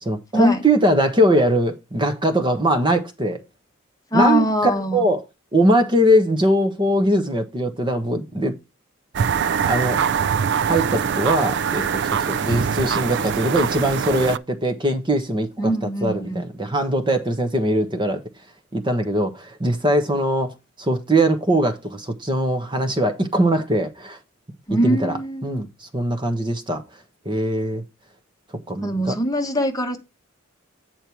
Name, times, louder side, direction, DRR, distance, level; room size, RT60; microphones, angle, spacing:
voice 1, 0.0-3.4 4.1-4.5 4.9-5.2 5.5-8.6 9.7-10.0 10.7-15.7 16.0-18.2 18.7-24.2 24.8-25.1 25.4-26.8 27.2-27.8 28.7-29.2, right 1 dB, 20° right, 1.2 m, -21 dB
voice 2, 4.1-5.0 15.6-16.4 24.7-25.6 28.8-30.0, equal, 15° left, 1.2 m, -22 dB
sound 1, 9.1-14.4, right 7 dB, 55° right, 0.4 m, -23 dB
8.9 x 4.4 x 4.7 m
head